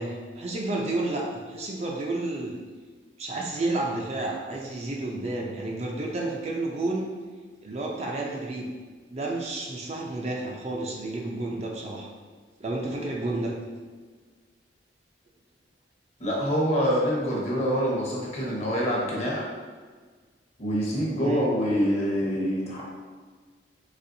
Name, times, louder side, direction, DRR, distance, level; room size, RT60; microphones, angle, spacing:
voice 1, 0.0-2.6 3.2-7.1 7.6-8.7 9.1-12.1 12.6-13.5 21.2-21.4, right 2 dB, 35° right, -1 dB, 0.4 m, -31 dB
voice 2, 16.2-19.4 20.6-22.8, equal, 40° left, -4 dB, 0.8 m, -25 dB
4.2 x 3.0 x 2.6 m, 1.5 s
head